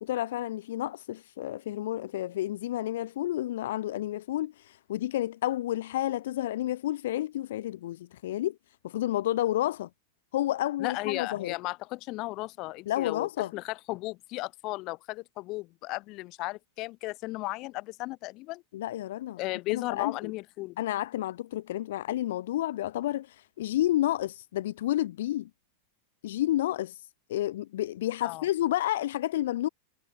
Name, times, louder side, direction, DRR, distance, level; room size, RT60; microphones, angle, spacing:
voice 1, 0.0-9.9 10.3-11.6 12.9-13.5 18.7-19.4 19.7-20.3 20.8-25.5 26.2-29.7, left 14 dB, 55° left, 1.0 m, -30 dB
voice 2, 10.8-18.6 19.4-20.8 28.2-28.4, left 21 dB, 40° left, 3.2 m, -35 dB
figure-of-eight pair, 90°, 0 cm